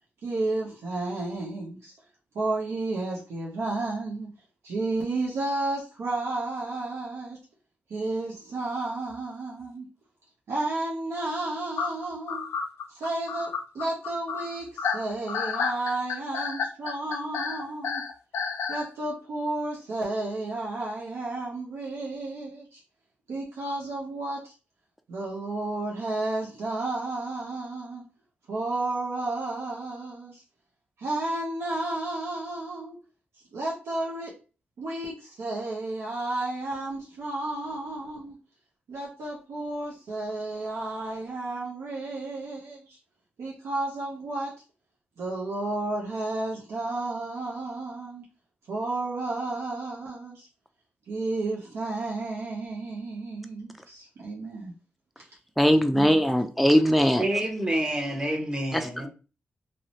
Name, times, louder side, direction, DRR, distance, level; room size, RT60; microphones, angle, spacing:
voice 1, 0.2-1.9 2.3-4.3 4.6-7.4 7.9-9.9 10.5-12.5 12.9-18.0 18.7-22.8 23.3-24.5 25.1-28.0 28.5-30.4 31.0-33.0 33.5-34.3 34.8-38.4 38.9-43.0 43.4-44.5 45.2-48.2 48.7-50.5 51.1-54.7 55.2-55.3 55.9-56.1, right 2 dB, 80° right, 0.6 m, -32 dB
sound 1, 11.8-18.9, left 6 dB, 85° left, 0.4 m, -31 dB
voice 2, 55.6-57.2 58.7-58.8, equal, ahead, 0.3 m, -20 dB
voice 3, 57.2-59.1, right 1 dB, 20° right, 0.8 m, -28 dB
2.6 x 2.0 x 2.9 m
cardioid pair, 55°, 4 cm